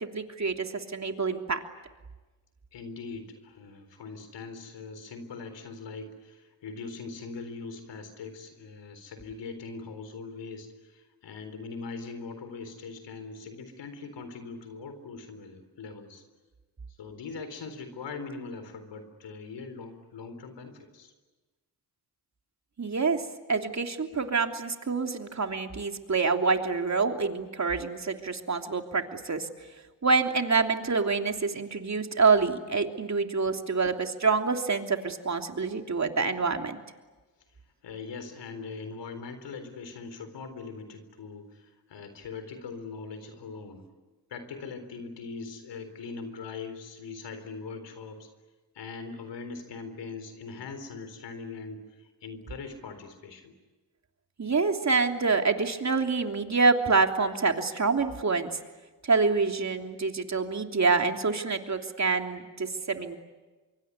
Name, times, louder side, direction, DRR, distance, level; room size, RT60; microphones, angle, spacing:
voice 1, 0.0-1.6 22.8-23.2 23.5-29.5 30.0-36.8 54.4-58.6 59.0-63.2, right 4 dB, 40° right, 4 dB, 3.2 m, -26 dB
voice 2, 2.7-16.2 17.0-21.1 37.8-43.9 44.3-48.3 48.7-53.5, left 4 dB, 75° left, 9 dB, 4.0 m, -41 dB
25.0 x 24.0 x 9.7 m, 1.2 s
supercardioid pair, 50°, 43 cm